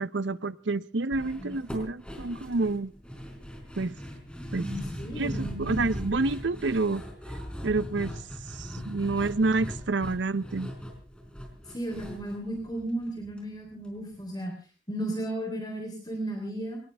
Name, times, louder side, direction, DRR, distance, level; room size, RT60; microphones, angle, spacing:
voice 1, 0.0-2.9 3.7-3.9 4.5-4.7 5.2-7.0 7.6-8.2 8.5-10.7, right 3 dB, 80° right, 0.7 m, -28 dB
sound 1, 1.1-13.4 13.7-13.8 14.1-14.2, equal, 5° left, 4.2 m, -39 dB
voice 2, 4.6-5.8 11.7-14.5 14.9-16.8, right 1 dB, 20° left, 3.5 m, -34 dB
22.0 x 19.0 x 3.4 m
head